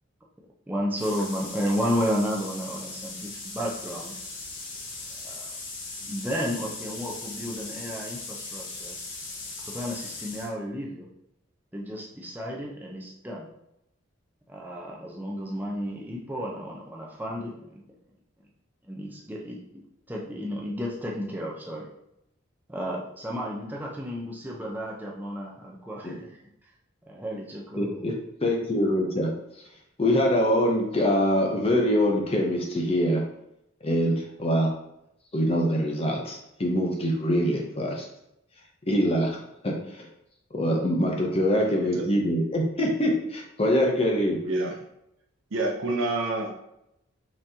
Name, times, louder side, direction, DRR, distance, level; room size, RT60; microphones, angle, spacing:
voice 1, 0.7-4.2 5.2-5.5 6.0-8.9 9.6-11.1 11.7-13.5 14.5-17.7 18.9-19.6 20.1-21.9 22.7-26.3 27.0-28.0, equal, 10° right, -3 dB, 0.7 m, -32 dB
sound 1, 1.0-10.5, left 3 dB, 80° left, 1.4 m, -39 dB
voice 2, 27.8-28.2 28.4-29.3 30.0-33.2 33.8-34.7 35.3-38.1 38.9-39.4 39.6-39.7 40.5-44.4, equal, 30° left, 0 dB, 0.7 m, -24 dB
voice 3, 41.6-42.0 44.5-44.8 45.5-46.7, right 2 dB, 75° right, 2 dB, 0.8 m, -29 dB
5.6 x 3.0 x 2.8 m, 0.81 s
head